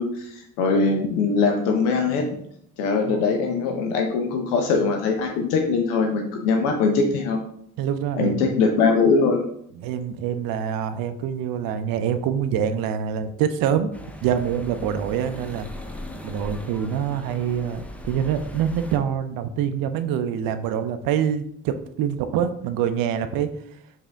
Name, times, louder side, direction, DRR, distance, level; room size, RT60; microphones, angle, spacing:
voice 1, 0.0-2.4 2.8-7.4 8.2-9.4, left 4 dB, 70° left, 3 dB, 0.7 m, -22 dB
voice 2, 7.8-8.6 9.8-13.9 14.2-15.7 16.2-23.5, right 8 dB, 50° right, 10 dB, 0.5 m, -25 dB
sound 1, 13.9-19.0, left 1 dB, 5° left, 0.4 m, -38 dB
4.9 x 2.7 x 3.4 m, 0.68 s
figure-of-eight pair, 45°, 45 cm